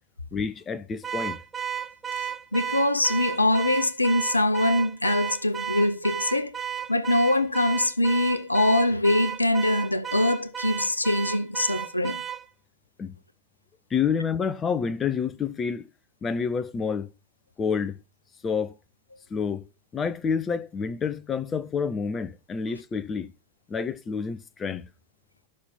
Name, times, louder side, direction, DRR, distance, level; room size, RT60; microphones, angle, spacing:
voice 1, 0.3-1.4 13.0-13.1 13.9-15.9 16.2-17.1 17.6-18.0 18.4-18.7 19.3-19.7 19.9-23.3 23.7-24.9, left 6 dB, 20° left, 1.0 m, -28 dB
Car / Alarm, 1.0-12.5, right 9 dB, 15° right, 0.8 m, -33 dB
voice 2, 2.1-6.6 6.9-12.2, left 1 dB, 85° left, 0.7 m, -23 dB
13.0 x 6.0 x 5.7 m
figure-of-eight pair, 90°, 0 cm